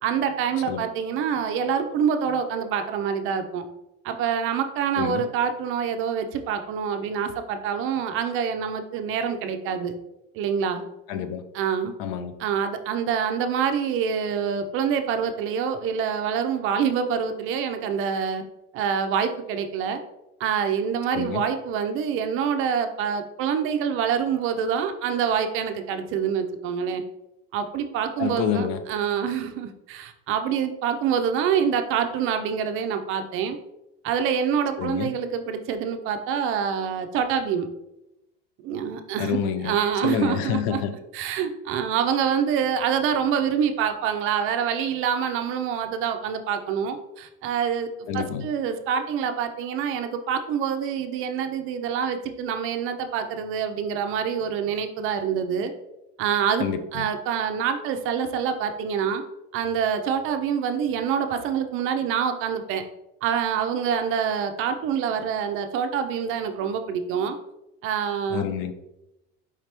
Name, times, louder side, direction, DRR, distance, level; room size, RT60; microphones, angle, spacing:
voice 1, 0.0-3.6 4.0-9.9 10.3-10.8 11.5-11.9 12.4-18.4 18.7-20.0 20.4-27.0 27.5-33.6 34.0-37.7 38.6-40.8 41.1-47.9 48.1-55.7 56.2-56.7 56.9-59.2 59.5-62.8 63.2-67.4 67.8-68.4, right 7 dB, 45° right, 7 dB, 0.4 m, -26 dB
voice 2, 11.1-11.4 12.0-12.3 21.1-21.4 28.2-28.8 34.8-35.1 39.2-39.7 40.0-40.9 48.1-48.5 56.6-57.1 68.3-68.7, left 8 dB, 70° left, 10 dB, 0.5 m, -27 dB
4.9 x 2.9 x 3.2 m, 0.89 s
cardioid pair, 150°, 30 cm